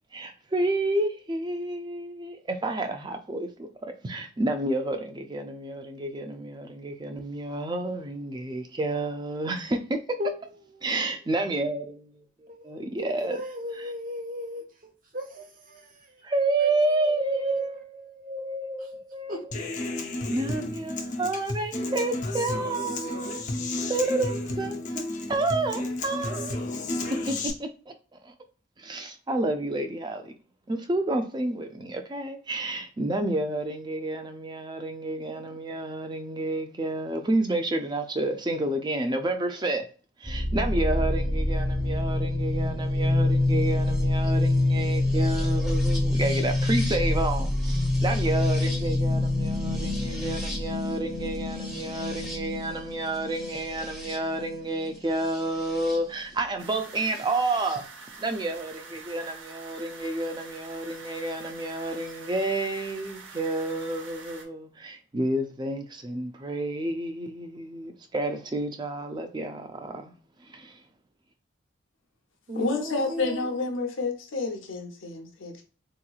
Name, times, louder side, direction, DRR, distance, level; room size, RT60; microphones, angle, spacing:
voice 1, 0.1-10.0 10.8-13.4 16.2-19.4 20.3-23.5 23.9-25.0 25.3-26.6 27.3-27.9 28.2-28.3 28.8-30.3 30.7-39.9 40.2-57.8 58.2-70.1 70.4-70.8, right 2 dB, 20° right, 0.4 m, -30 dB
voice 2, 12.5-16.3 16.6-18.3 18.8-18.9 19.3-19.4 72.5-73.6, left 1 dB, 45° right, 0.8 m, -37 dB
Human voice / Acoustic guitar, 19.5-27.5, left 2 dB, 40° left, 0.5 m, -32 dB
sound 1, 40.2-56.0 57.1-57.8, left 2 dB, ahead, 0.7 m, -26 dB
sound 2, 56.6-64.4, right 4 dB, 80° right, 0.7 m, -46 dB
voice 3, 72.5-75.6, left 3 dB, 85° left, 0.8 m, -29 dB
3.7 x 2.9 x 2.3 m
head